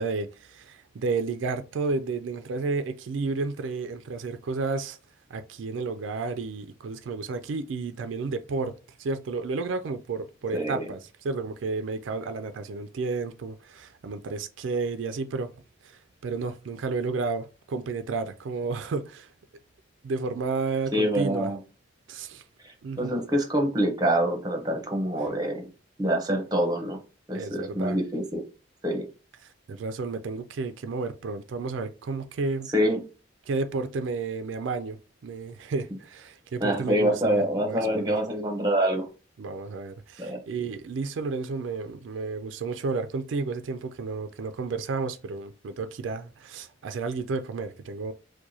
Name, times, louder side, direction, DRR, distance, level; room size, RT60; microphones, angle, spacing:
voice 1, 0.0-5.0 5.3-8.7 9.0-15.5 15.8-19.3 20.0-21.5 22.1-22.4 22.8-23.2 27.3-28.0 29.7-32.7 33.5-35.0 35.2-38.2 39.4-48.1, right 4 dB, 85° right, 0.4 m, -32 dB
voice 2, 10.5-10.9 20.9-21.6 23.0-25.7 26.0-27.0 27.3-28.4 28.8-29.1 32.7-33.0 36.6-39.1 40.2-40.4, equal, 20° right, 0.8 m, -25 dB
4.6 x 2.2 x 2.7 m
head